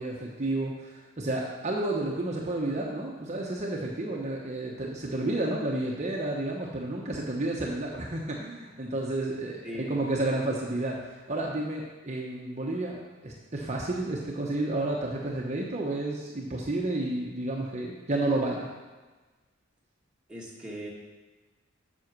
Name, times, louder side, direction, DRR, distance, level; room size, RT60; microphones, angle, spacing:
voice 1, 0.0-18.7, right 2 dB, 35° right, -2 dB, 1.0 m, -31 dB
voice 2, 9.6-10.0 20.3-20.9, equal, 5° right, -5 dB, 1.7 m, -39 dB
7.9 x 6.3 x 6.1 m, 1.3 s
head